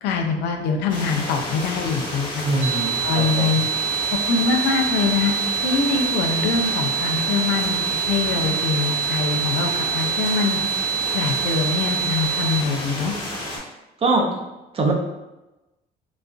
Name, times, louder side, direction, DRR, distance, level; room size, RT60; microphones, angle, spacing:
voice 1, 0.0-2.5 3.0-3.6 4.3-5.3 5.6-10.6 11.1-13.1, left 5 dB, 85° left, 3 dB, 0.5 m, -23 dB
sound 1, 0.9-13.6, left 1 dB, 30° left, 1.1 m, -31 dB
voice 2, 2.4-3.7 14.0-14.3 14.7-14.9, right 2 dB, 35° right, 1 dB, 0.6 m, -22 dB
sound 2, 2.6-12.6, right 8 dB, 75° right, 1.0 m, -25 dB
4.0 x 2.2 x 2.5 m, 1.0 s
cardioid pair, 110°, 17 cm